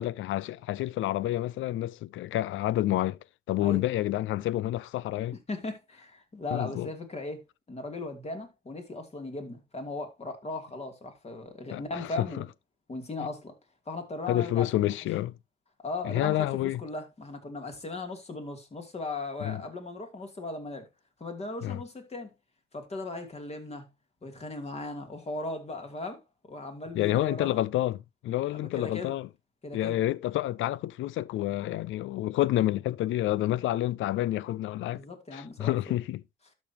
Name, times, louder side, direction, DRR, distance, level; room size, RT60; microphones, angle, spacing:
voice 1, 0.0-3.2 3.5-5.4 6.5-6.9 11.7-12.4 14.3-15.3 16.0-16.8 19.4-19.6 21.6-21.8 26.9-29.3 29.7-35.0 35.3-36.2, left 14 dB, 80° left, 0.5 m, -29 dB
voice 2, 5.5-12.5 12.9-13.5 13.9-14.9 15.8-20.9 21.2-22.3 22.7-23.9 24.2-26.2 26.5-27.6 28.5-29.1 29.6-30.0 34.9-35.9, left 2 dB, 30° left, 2.8 m, -37 dB
12.0 x 6.2 x 2.9 m
cardioid pair, 90°, 20 cm